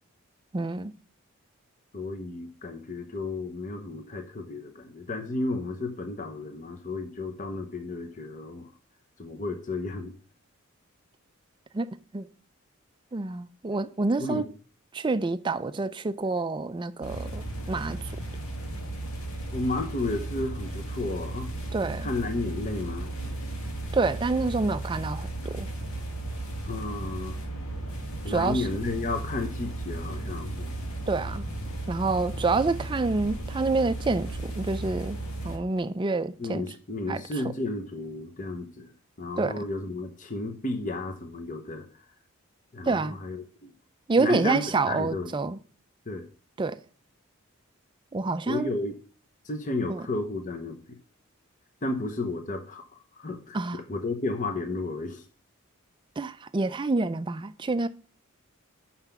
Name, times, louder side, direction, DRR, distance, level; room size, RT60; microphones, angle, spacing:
voice 1, 0.5-0.9 11.7-12.3 13.1-14.4 14.9-18.0 21.7-22.1 23.9-25.7 28.3-28.7 31.1-31.4 31.9-35.2 35.4-36.6 37.1-37.2 39.4-39.6 42.9-43.2 44.1-45.6 46.6-46.8 48.1-48.7 49.9-50.0 53.5-53.8 56.2-57.9, right 3 dB, 20° right, 0.4 m, -27 dB
voice 2, 1.9-8.7 9.2-10.1 14.2-14.5 19.5-21.5 22.0-23.1 26.6-27.4 28.2-30.7 36.4-38.9 39.2-41.9 42.7-43.7 44.2-45.3 46.1-46.3 48.5-48.9 49.4-51.0 51.8-55.2, left 2 dB, 35° left, 0.9 m, -33 dB
sound 1, 17.0-35.6, right 2 dB, 80° left, 1.9 m, -35 dB
5.8 x 5.7 x 7.0 m
head